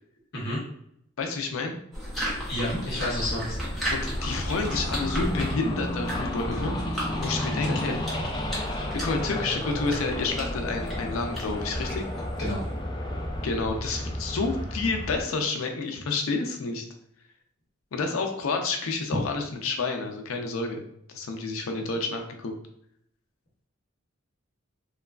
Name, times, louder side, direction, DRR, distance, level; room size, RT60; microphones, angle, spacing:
voice 1, 1.2-1.7 3.9-8.0 8.9-12.0 13.4-16.8 17.9-20.8 21.1-22.5, left 3 dB, 85° left, 4 dB, 0.5 m, -29 dB
sound 1, 1.9-12.8, equal, ahead, 0.8 m, -35 dB
voice 2, 2.5-3.6 7.4-7.6 12.4-12.6, left 1 dB, 55° left, -6 dB, 0.7 m, -30 dB
sound 2, 3.1-15.2, left 1 dB, 20° left, 0.4 m, -32 dB
3.1 x 2.2 x 2.3 m, 0.72 s
head